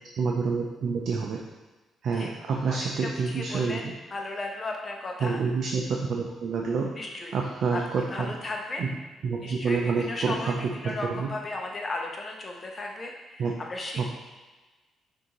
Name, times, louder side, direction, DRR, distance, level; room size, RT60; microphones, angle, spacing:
voice 1, 0.2-1.4 2.0-3.9 5.2-6.9 7.3-8.3 8.8-8.9 9.2-11.3 13.4-13.5 14.0-14.1, right 5 dB, 65° right, 0 dB, 0.5 m, -28 dB
voice 2, 2.7-5.4 6.9-7.4 7.7-7.8 8.1-8.9 9.4-14.1, left 2 dB, 35° left, 1 dB, 0.8 m, -35 dB
6.2 x 2.7 x 3.0 m, 1.2 s
cardioid pair, 100°, 0 cm